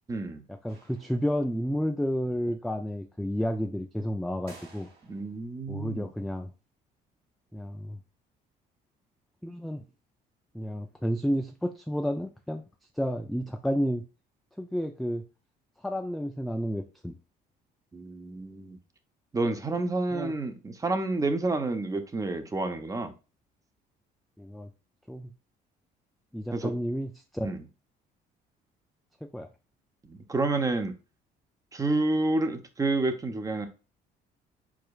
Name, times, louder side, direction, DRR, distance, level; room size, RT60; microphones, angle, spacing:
voice 1, 0.1-0.4 5.1-6.1 17.9-18.8 19.3-23.1 26.5-26.7 27.4-27.6 30.0-30.9 31.7-33.7, right 2 dB, 20° right, 0.7 m, -29 dB
voice 2, 0.6-4.9 5.7-6.5 7.5-8.0 9.4-9.8 10.5-12.6 13.0-14.0 14.6-15.3 15.8-17.2 20.1-20.3 24.4-24.7 25.1-25.3 26.3-27.5 29.2-29.5, equal, ahead, 0.3 m, -31 dB
sound 1, 0.7-1.6 4.5-5.5, right 3 dB, 65° right, 2.6 m, -54 dB
4.9 x 4.4 x 2.3 m
cardioid pair, 110°, 17 cm